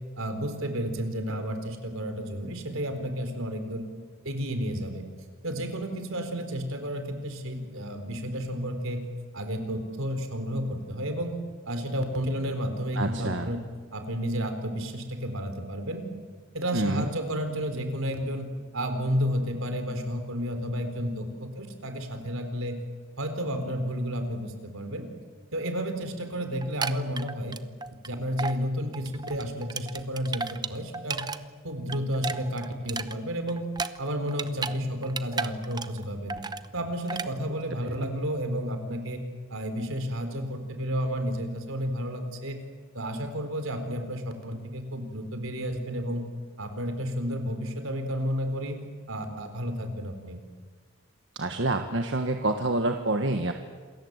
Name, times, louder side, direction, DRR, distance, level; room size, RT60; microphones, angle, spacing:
voice 1, 0.2-3.8 4.2-5.0 5.4-9.0 9.3-11.4 11.7-13.6 13.9-16.1 16.5-22.8 23.2-25.1 25.5-27.6 28.0-31.2 31.6-33.7 34.0-36.4 36.7-39.2 39.5-42.6 42.9-46.2 46.6-48.8 49.1-50.4, equal, 80° right, 7 dB, 3.9 m, -31 dB
voice 2, 12.9-13.5 16.7-17.1 37.8-37.9 51.3-53.5, right 2 dB, 60° right, 6 dB, 1.4 m, -27 dB
sound 1, 26.6-28.1 28.4-28.6 28.9-31.4 31.7-34.8 35.0-36.0 36.3-36.7 37.1-37.3, right 4 dB, 20° right, 0.7 m, -33 dB
28.0 x 21.5 x 8.1 m, 1.6 s
head